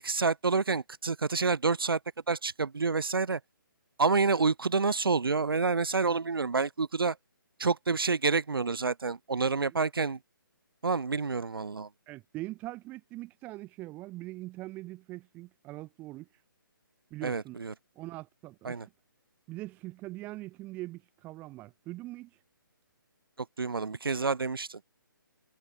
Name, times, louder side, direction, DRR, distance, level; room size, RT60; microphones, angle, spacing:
voice 1, 0.0-2.0 2.3-3.4 4.0-7.2 7.6-10.2 10.8-11.9 17.2-17.7 18.6-18.9 23.6-24.8, right 4 dB, 80° right, 3.8 m, -28 dB
voice 2, 12.1-16.3 17.1-17.6 18.0-18.8 19.5-22.3, right 18 dB, 15° right, 3.9 m, -42 dB
hypercardioid pair, 165°, 12 cm